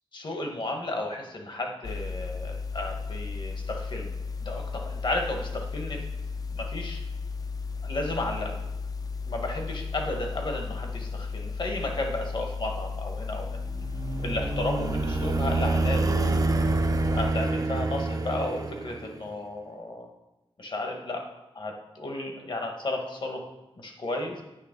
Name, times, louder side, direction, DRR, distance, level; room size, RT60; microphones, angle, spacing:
voice 1, 0.1-4.1 4.4-6.0 6.5-7.0 7.8-8.6 9.3-13.6 14.2-16.4 17.1-20.1 20.6-21.2 21.5-23.4 23.8-24.4, left 2 dB, 60° left, 3 dB, 1.1 m, -33 dB
sound 1, 1.8-17.3, left 4 dB, 40° left, 0.4 m, -34 dB
sound 2, 13.6-19.3, right 3 dB, 40° right, 0.4 m, -27 dB
8.5 x 3.2 x 5.1 m, 1.0 s
wide cardioid pair, 120°, 9 cm